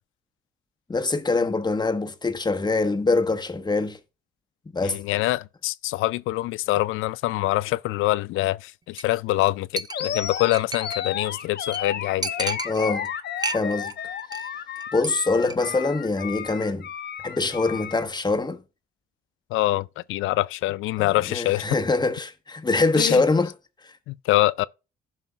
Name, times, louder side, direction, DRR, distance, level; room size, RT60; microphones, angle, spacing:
voice 1, 0.9-4.0 4.7-5.0 12.6-13.1 13.5-13.9 14.9-16.9 17.2-18.6 21.0-23.5 23.8-23.9, left 3 dB, 20° left, 1.2 m, -24 dB
voice 2, 4.8-12.6 19.5-21.7 23.0-23.2 24.1-24.6, left 17 dB, 90° left, 0.4 m, -25 dB
Chink clink, 9.0-9.2 9.4-9.5 9.8-11.1 11.4-11.5 11.7-11.8 12.2-13.1 13.4-13.9 14.2-14.5 14.8-15.1 15.4-15.6, right 4 dB, 20° right, 0.7 m, -32 dB
Animal, 9.9-18.1, left 8 dB, 60° left, 1.0 m, -33 dB
15.5 x 5.6 x 2.3 m
cardioid pair, 90°, 20 cm